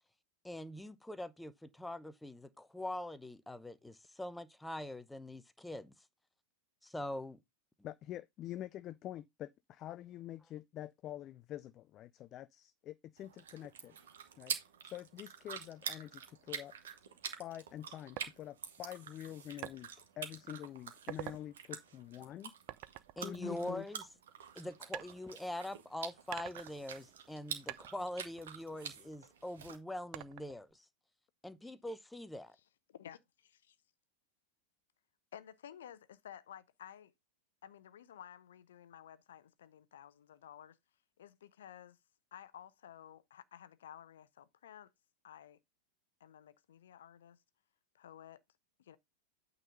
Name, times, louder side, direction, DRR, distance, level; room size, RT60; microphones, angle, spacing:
voice 1, 0.4-5.9 6.8-7.4 23.2-24.0 24.6-30.8 31.4-32.6, left 1 dB, 5° left, 0.7 m, -43 dB
voice 2, 7.8-14.0 14.4-14.6 14.8-16.8 17.4-19.9 20.2-22.6 23.2-23.9, left 12 dB, 35° left, 0.4 m, -46 dB
sound 1, 13.2-29.8, right 7 dB, 60° right, 1.7 m, -47 dB
sound 2, 18.2-18.3 19.6-19.8 20.3-20.5 20.9-21.4 22.7-24.2 24.9-25.8 26.3-27.4 27.7-29.3 30.1-30.7, right 17 dB, 40° right, 0.5 m, -47 dB
voice 3, 23.4-23.9 31.6-31.7 32.9-33.8 35.3-37.1 37.6-40.8 41.2-42.0 42.3-44.9 45.2-45.6 46.2-47.4 47.9-48.4 48.8-49.0, left 10 dB, 60° left, 0.7 m, -53 dB
9.0 x 4.0 x 5.3 m
figure-of-eight pair, 90°, 0 cm